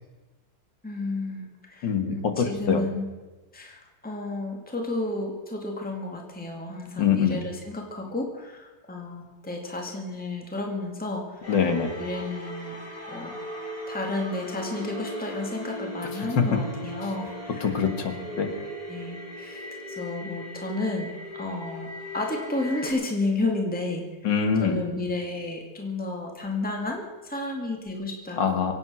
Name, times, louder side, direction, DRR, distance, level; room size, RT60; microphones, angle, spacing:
voice 1, 0.8-3.1 3.5-11.4 12.0-12.8 13.1-13.4 13.9-17.7 18.1-18.3 18.9-21.1 21.4-21.9 22.1-24.1 24.6-28.7, left 2 dB, 5° left, 1 dB, 2.1 m, -32 dB
voice 2, 1.8-2.8 7.0-7.4 11.5-11.9 16.4-16.5 17.6-18.5 24.2-24.8 28.4-28.7, left 7 dB, 80° left, 6 dB, 2.3 m, -24 dB
sound 1, 11.4-22.9, equal, 30° left, 3.3 m, -38 dB
23.5 x 9.1 x 6.2 m, 1.2 s
omnidirectional pair, 1.9 m